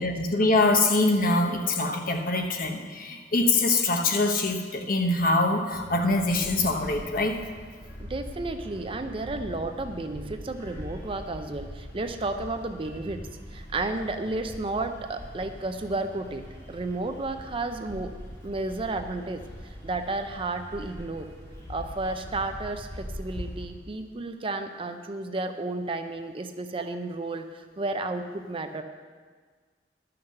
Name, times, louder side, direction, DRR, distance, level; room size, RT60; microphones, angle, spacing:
voice 1, 0.0-7.4, left 2 dB, 50° left, 4 dB, 1.0 m, -24 dB
sound 1, 5.7-23.7, equal, 15° left, 1.7 m, -42 dB
voice 2, 8.0-18.1 18.4-19.4 19.8-21.3 21.7-28.8, right 2 dB, 30° right, 7 dB, 0.5 m, -32 dB
11.5 x 5.9 x 6.5 m, 1.5 s
head